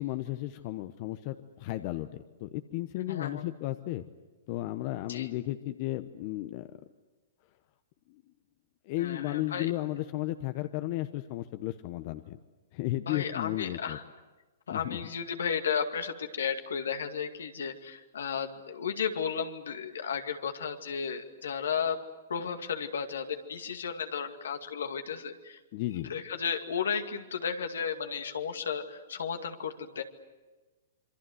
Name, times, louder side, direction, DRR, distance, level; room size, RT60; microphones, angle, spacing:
voice 1, 0.0-4.0 4.5-6.7 8.8-12.4 12.7-14.0 14.7-15.0 25.7-26.1, left 16 dB, 45° left, 10 dB, 1.0 m, -34 dB
voice 2, 3.1-3.4 5.1-5.3 9.0-9.7 13.1-14.0 14.7-22.0 22.3-25.6 25.9-30.0, left 7 dB, 75° left, 6 dB, 2.2 m, -34 dB
26.5 x 24.5 x 8.0 m, 1.2 s
hypercardioid pair, 120°, 0 cm